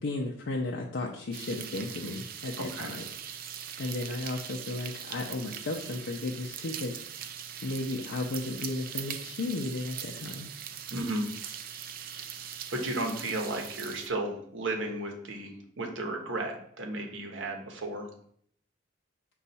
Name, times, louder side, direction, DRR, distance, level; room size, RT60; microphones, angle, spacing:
voice 1, 0.0-3.0 3.8-7.0 7.6-10.5, left 2 dB, 65° left, -1 dB, 0.5 m, -34 dB
sound 1, 1.3-14.1, right 9 dB, 50° right, 0.3 m, -41 dB
voice 2, 2.6-2.9 10.9-11.3 12.7-18.1, right 2 dB, 80° right, 2 dB, 0.8 m, -34 dB
5.3 x 2.3 x 4.0 m, 0.65 s
head